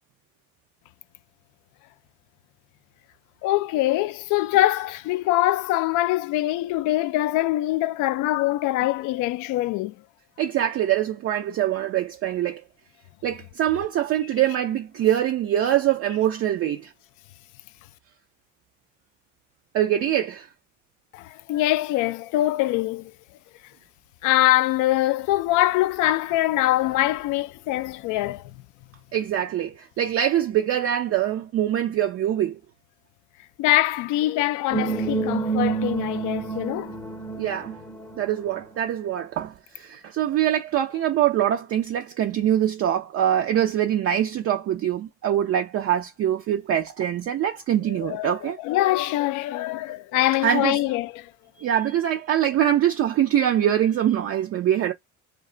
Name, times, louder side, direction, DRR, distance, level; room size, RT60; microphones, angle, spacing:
voice 1, 3.4-9.9 21.1-23.1 24.2-28.5 33.6-37.0 47.9-51.3, left 15 dB, 65° left, 0.4 m, -23 dB
voice 2, 10.4-12.6 13.2-16.9 19.7-20.5 29.1-32.6 37.4-37.8 38.2-48.6 50.4-50.8 51.6-54.9, right 11 dB, 45° right, 0.4 m, -23 dB
sound 1, 34.7-38.6, right 4 dB, 10° left, 0.7 m, -28 dB
2.3 x 2.2 x 3.7 m
supercardioid pair, 80°, 34 cm